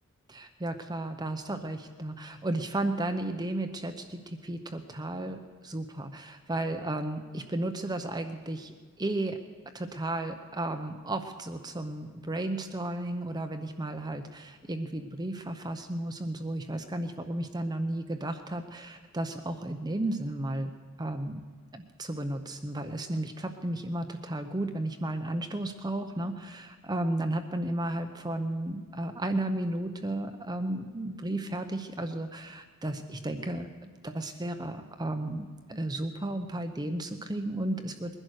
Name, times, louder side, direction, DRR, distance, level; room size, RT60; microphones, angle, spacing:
voice 1, 0.3-9.4 9.7-20.7 21.0-21.4 21.7-38.2, right 1 dB, 20° right, 6 dB, 0.7 m, -33 dB
21.0 x 11.0 x 6.4 m, 1.4 s
head